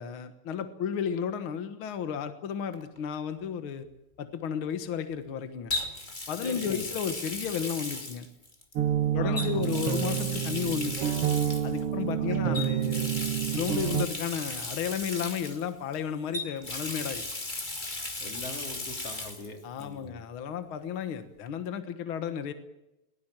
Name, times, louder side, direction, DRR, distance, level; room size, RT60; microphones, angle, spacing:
voice 1, 0.0-3.9 4.2-5.7 6.3-8.3 9.1-11.1 11.6-13.1 13.5-17.2 19.6-22.5, left 7 dB, 65° left, 9 dB, 1.3 m, -33 dB
Water tap faucet, 2.7-3.0 5.7-8.8 9.3-11.8 12.5-16.0 16.3-19.5 19.8-19.9 21.5-21.6, left 2 dB, 15° left, 2.1 m, -36 dB
voice 2, 6.4-6.9 9.1-9.9 12.2-12.4 18.2-20.2, left 3 dB, 40° left, 4 dB, 4.0 m, -42 dB
sound 1, 8.8-14.1, right 11 dB, 65° right, 1.5 m, -28 dB
21.5 x 20.0 x 9.0 m, 0.94 s
omnidirectional pair, 4.2 m